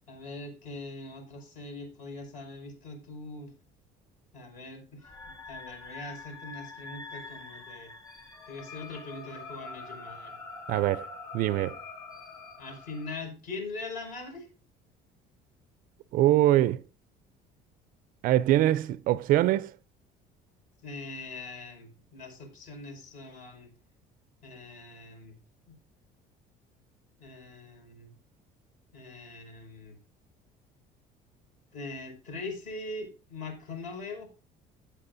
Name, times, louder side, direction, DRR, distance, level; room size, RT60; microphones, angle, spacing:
voice 1, 0.1-3.5 4.3-7.9 8.5-10.4 12.6-14.5 20.8-23.7 24.4-25.3 25.7-25.8 27.2-28.1 28.9-30.0 31.7-34.3, left 3 dB, 55° left, 5.4 m, -42 dB
sound 1, 5.0-13.2, left 3 dB, 20° left, 5.1 m, -44 dB
voice 2, 10.7-11.1 11.3-11.8 16.1-16.8 18.2-19.7, right 14 dB, 60° right, 0.4 m, -23 dB
15.5 x 8.6 x 2.6 m
cardioid pair, 160°, 17 cm